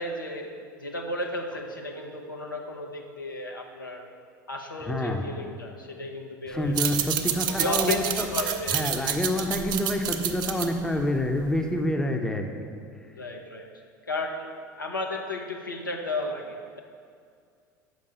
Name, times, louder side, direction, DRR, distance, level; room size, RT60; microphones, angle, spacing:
voice 1, 0.0-4.1 4.5-6.8 7.5-9.1 13.2-13.7 14.1-14.5 14.8-16.8, left 2 dB, 85° left, 1 dB, 0.8 m, -33 dB
voice 2, 4.8-5.3 6.5-8.3 8.7-12.7, left 1 dB, 5° left, 4 dB, 0.7 m, -27 dB
sound 1, 6.6-11.8, right 9 dB, 40° right, 0.6 m, -29 dB
6.6 x 5.3 x 6.8 m, 2.2 s
figure-of-eight pair, 70°, 11 cm